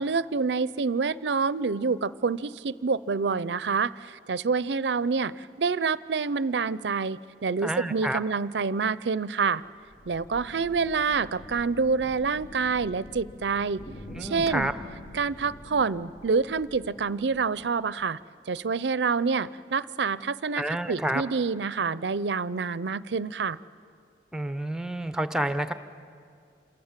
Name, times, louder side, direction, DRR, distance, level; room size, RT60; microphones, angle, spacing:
voice 1, 0.0-9.6 10.1-13.8 14.2-14.7 15.1-18.2 18.5-23.6, right 5 dB, 80° right, 18 dB, 0.6 m, -27 dB
voice 2, 7.6-8.2 14.2-14.7 20.5-21.2 24.3-25.7, right 1 dB, 5° right, 10 dB, 0.8 m, -29 dB
sound 1, 9.6-18.0, left 1 dB, 50° left, 1.6 m, -46 dB
28.0 x 27.5 x 7.5 m, 2.3 s
head